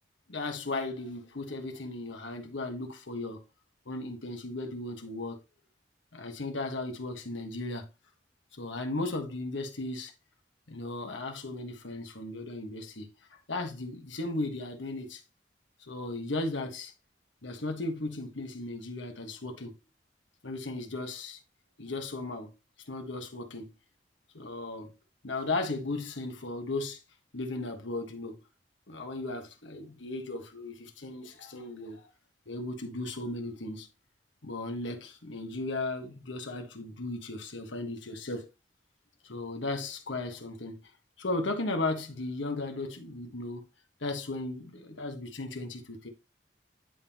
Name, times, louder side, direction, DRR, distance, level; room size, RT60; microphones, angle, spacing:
voice 1, 0.3-3.4 3.8-5.4 6.1-7.9 8.6-10.1 10.7-15.2 15.8-16.9 17.4-19.7 20.4-21.4 21.8-22.5 22.8-23.7 24.3-24.9 25.2-27.0 27.3-28.4 28.9-32.1 32.5-33.9 34.4-38.5 39.2-40.8 41.2-43.6 44.0-46.1, left 2 dB, 85° left, 1.5 m, -36 dB
11.0 x 3.6 x 2.9 m
head